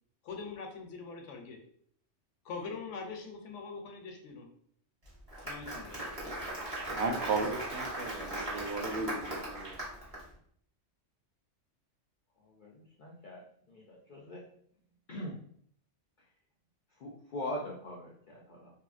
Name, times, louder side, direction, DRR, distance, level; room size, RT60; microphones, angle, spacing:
voice 1, 0.2-1.6 2.4-4.5 5.4-6.0, left 4 dB, 80° left, 4 dB, 0.9 m, -42 dB
Applause, 5.1-10.2, right 1 dB, 35° right, 0.9 m, -38 dB
voice 2, 6.9-9.7, right 3 dB, 70° right, 4 dB, 0.8 m, -35 dB
voice 3, 12.6-13.4 13.7-14.4 15.1-15.4 17.0-18.7, left 1 dB, 60° left, -3 dB, 0.5 m, -41 dB
2.7 x 2.7 x 2.4 m, 0.63 s
omnidirectional pair, 1.3 m